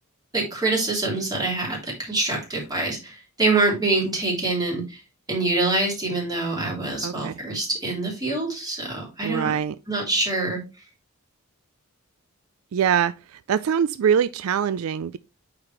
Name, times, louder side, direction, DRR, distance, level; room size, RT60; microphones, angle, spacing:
voice 1, 0.3-5.0 5.3-9.5 9.9-10.6, right 2 dB, 20° right, 3.1 m, -25 dB
voice 2, 7.0-7.3 9.2-9.7 12.7-15.2, right 8 dB, 70° right, 0.3 m, -23 dB
8.6 x 4.9 x 3.1 m
head